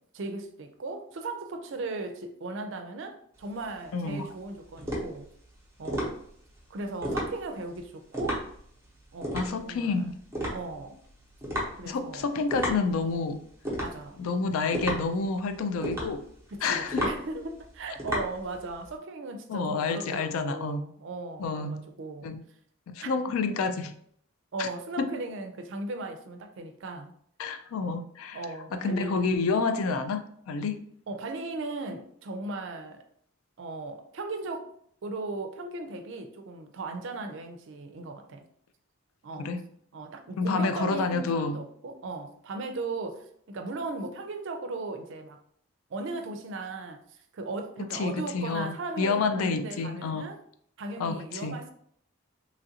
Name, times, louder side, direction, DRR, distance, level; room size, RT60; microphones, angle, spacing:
voice 1, 0.0-5.3 5.8-6.2 6.7-8.4 9.1-10.0 10.5-11.0 11.8-12.3 13.8-14.2 16.5-22.3 23.0-23.1 24.5-27.1 28.3-29.3 31.1-33.0 33.6-34.7 35.0-38.4 39.2-39.5 39.9-45.4 45.9-47.0 47.3-50.4 50.8-51.7, right 2 dB, 60° right, 6 dB, 0.4 m, -37 dB
sound 1, 3.4-18.9, equal, 15° right, 0.8 m, -34 dB
voice 2, 3.9-4.3 9.3-10.2 11.9-13.4 14.2-16.2 16.6-17.1 19.5-20.8 21.4-21.8 22.2-22.4 22.9-23.9 24.6-24.7 25.0-25.1 27.4-28.4 28.7-30.9 39.3-39.6 40.4-41.6 47.8-50.3 51.0-51.7, left 4 dB, 75° left, 9 dB, 0.3 m, -29 dB
3.0 x 2.5 x 2.8 m, 0.65 s
head